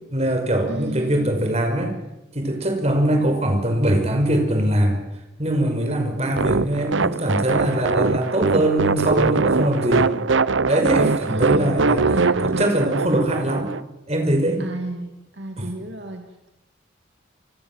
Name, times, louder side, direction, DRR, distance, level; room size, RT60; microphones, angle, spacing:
voice 1, 0.1-1.9 2.3-5.0 5.4-10.1 10.7-13.7 14.1-14.6 15.6-15.7, right 1 dB, 35° right, 4 dB, 5.5 m, -22 dB
voice 2, 0.7-1.3 3.1-3.3 11.3-12.7 14.6-16.5, right 1 dB, 65° right, 4 dB, 2.7 m, -33 dB
sound 1, 6.4-13.8, right 4 dB, 80° right, 0.8 m, -22 dB
28.0 x 24.5 x 7.5 m, 0.96 s
head